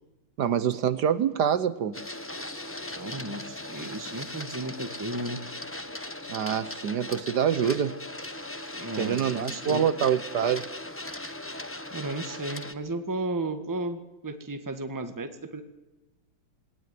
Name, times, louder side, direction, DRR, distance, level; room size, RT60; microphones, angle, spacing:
voice 1, 0.4-2.0 6.3-8.0 9.0-10.7, right 8 dB, 60° right, 14 dB, 1.4 m, -25 dB
Printer, 1.9-12.7, left 1 dB, 10° left, 0.8 m, -38 dB
voice 2, 2.9-5.4 8.7-9.9 11.9-15.6, right 2 dB, 10° right, 8 dB, 1.4 m, -34 dB
20.5 x 18.5 x 9.7 m, 1.1 s
omnidirectional pair, 2.1 m